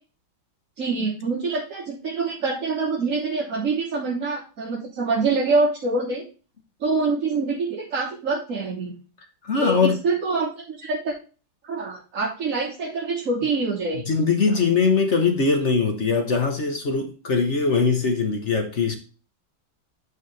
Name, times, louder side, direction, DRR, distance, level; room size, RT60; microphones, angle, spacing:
voice 1, 0.8-6.2 6.8-8.9 9.5-11.1 11.6-14.0, right 3 dB, 45° right, 1.5 m, -25 dB
voice 2, 9.4-10.0 14.1-19.0, left 4 dB, 40° left, 1.2 m, -21 dB
8.9 x 4.8 x 3.3 m
omnidirectional pair, 2.2 m